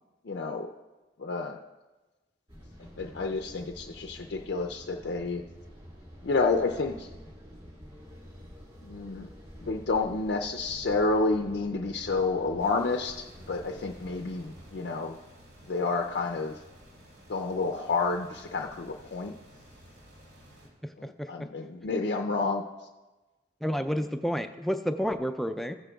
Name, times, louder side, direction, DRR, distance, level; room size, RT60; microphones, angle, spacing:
voice 1, 0.2-0.7 1.2-1.6 3.0-5.4 6.2-7.1 8.8-9.3 9.6-15.2 15.7-16.5 17.3-19.3 21.0-22.6, left 3 dB, 70° left, 2 dB, 0.5 m, -30 dB
sound 1, 2.5-14.7, equal, 30° right, 1.7 m, -49 dB
sound 2, 12.6-20.7, equal, 65° right, 2.4 m, -54 dB
voice 2, 20.8-21.3 23.6-25.7, equal, ahead, 7 dB, 0.3 m, -30 dB
15.0 x 9.8 x 2.3 m, 1.2 s
head